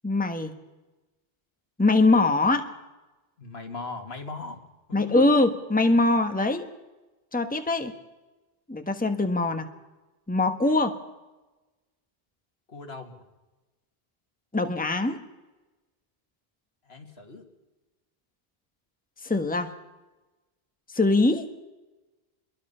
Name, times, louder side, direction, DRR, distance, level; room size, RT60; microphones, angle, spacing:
voice 1, 0.0-0.5 1.8-2.7 4.9-6.7 7.3-7.9 8.7-9.7 10.3-11.0 14.5-15.2 19.2-19.7 20.9-21.5, left 2 dB, 10° left, 7 dB, 1.2 m, -22 dB
voice 2, 3.4-4.6 4.9-5.3 12.7-13.2 16.9-17.5, left 3 dB, 80° left, 5 dB, 2.3 m, -39 dB
25.5 x 22.0 x 5.6 m, 1.1 s
omnidirectional pair, 1.0 m